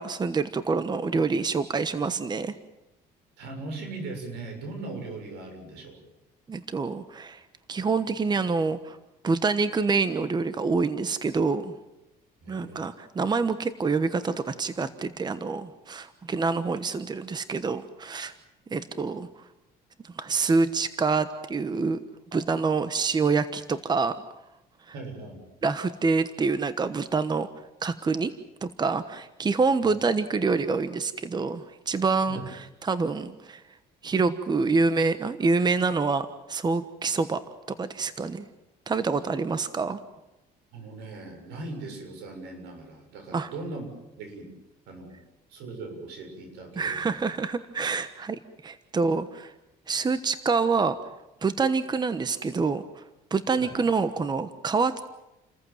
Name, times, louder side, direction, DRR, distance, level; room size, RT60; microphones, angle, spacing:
voice 1, 0.0-2.5 6.5-7.4 7.7-9.0 9.2-11.7 12.5-18.3 18.7-19.3 20.0-22.0 22.3-24.2 25.6-27.5 27.8-28.3 28.6-33.6 34.0-37.4 37.8-38.4 38.9-40.0 43.3-43.5 46.8-49.5 49.9-51.0 51.4-53.0 53.3-55.0, right 4 dB, 25° right, 12 dB, 1.2 m, -26 dB
voice 2, 3.4-6.0 12.4-12.8 24.9-25.4 29.8-29.9 32.3-32.5 40.7-43.9 44.2-44.5 44.9-45.2 45.5-47.2 53.6-53.8, right 3 dB, 85° right, 4 dB, 7.1 m, -39 dB
29.5 x 14.5 x 9.3 m, 0.95 s
cardioid pair, 110°, 17 cm